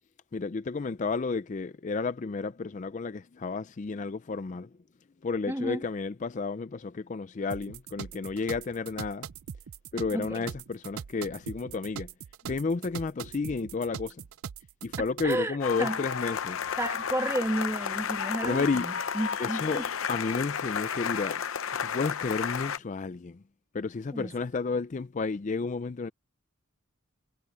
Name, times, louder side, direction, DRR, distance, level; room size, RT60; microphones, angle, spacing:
voice 1, 0.3-4.7 5.2-9.3 9.9-12.1 12.5-14.2 14.8-16.6 18.4-18.9 19.4-21.4 21.8-23.4 23.7-26.1, left 4 dB, 35° left, 0.4 m, -32 dB
voice 2, 5.5-5.8 10.1-10.5 15.2-16.0 16.8-19.8 24.1-24.3, right 1 dB, 15° right, 1.5 m, -32 dB
sound 1, 7.5-15.4, right 7 dB, 85° right, 0.5 m, -41 dB
sound 2, 15.6-22.8, left 7 dB, 75° left, 0.7 m, -32 dB
head